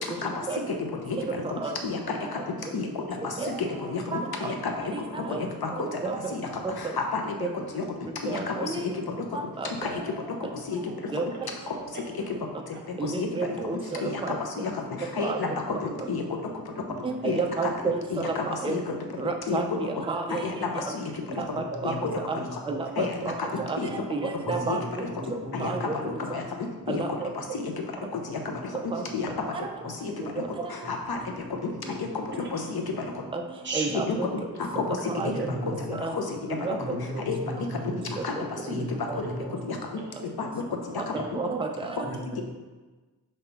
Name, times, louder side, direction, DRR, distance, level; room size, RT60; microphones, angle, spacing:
voice 1, 0.0-9.4 9.6-11.1 11.7-12.4 12.7-16.5 17.2-17.7 18.1-20.0 20.3-21.3 21.8-22.6 23.0-24.0 24.5-24.8 25.3-27.8 28.1-29.3 29.8-33.2 33.9-34.2 34.5-37.9 38.2-40.8 41.1-41.2, left 4 dB, 70° left, 2 dB, 0.9 m, -32 dB
voice 2, 8.3-8.8 9.3-9.9 11.1-11.2 13.0-14.4 15.2-15.4 17.0-18.8 19.2-20.4 21.8-21.9 22.3-22.4 22.7-23.3 23.7-23.8 24.1-24.8 25.6-25.8 26.9-27.3 28.9-29.0 30.6-30.7 33.3-33.4 33.7-34.3 35.1-35.5 35.9-36.1 36.6-36.8 39.1-39.2 41.1-42.0, right 4 dB, 15° right, 3 dB, 0.5 m, -30 dB
voice 3, 21.7-22.8 23.5-23.6 24.4-26.4 28.4-29.1 29.8-29.9 31.2-31.5 31.8-31.9 32.3-32.4 33.6-33.9 34.7-34.8 35.4-36.0 36.8-38.1 38.7-39.6 40.0-40.1 42.0-42.4, right 1 dB, 30° right, -2 dB, 1.0 m, -37 dB
5.5 x 5.4 x 3.5 m, 1.2 s
wide cardioid pair, 100°, 38 cm